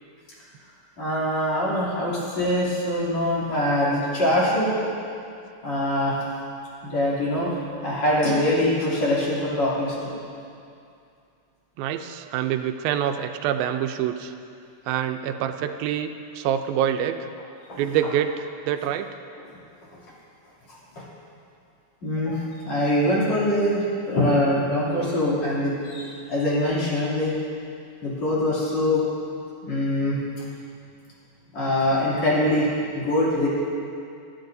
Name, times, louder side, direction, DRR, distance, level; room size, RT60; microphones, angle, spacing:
voice 1, 1.0-4.9 5.6-6.2 6.8-7.5 7.8-10.2 17.7-17.8 22.0-27.3 28.0-29.0 29.7-30.2 31.5-32.7 32.9-33.5, left 1 dB, 50° left, -8 dB, 3.9 m, -23 dB
voice 2, 11.8-14.3 14.9-17.3 17.8-19.1, right 9 dB, 85° right, 8 dB, 2.4 m, -26 dB
21.5 x 12.0 x 2.7 m, 2.5 s
omnidirectional pair, 4.1 m